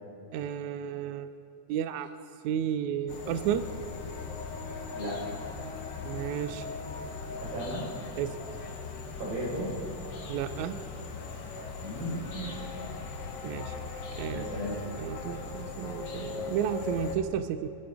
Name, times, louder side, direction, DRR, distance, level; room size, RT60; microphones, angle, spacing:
voice 1, 0.3-1.3 1.7-2.1 2.4-3.7 6.0-6.7 8.2-8.4 10.3-10.8 13.4-13.7 14.1-14.5 15.0-17.7, right 9 dB, 85° right, 11 dB, 1.7 m, -32 dB
sound 1, 3.1-17.2, left 4 dB, 65° left, 1.1 m, -39 dB
voice 2, 7.4-7.9 9.2-9.7 11.8-12.6 14.3-14.9, right 1 dB, 60° right, -5 dB, 6.0 m, -35 dB
25.0 x 13.0 x 3.5 m, 2.8 s
omnidirectional pair, 3.9 m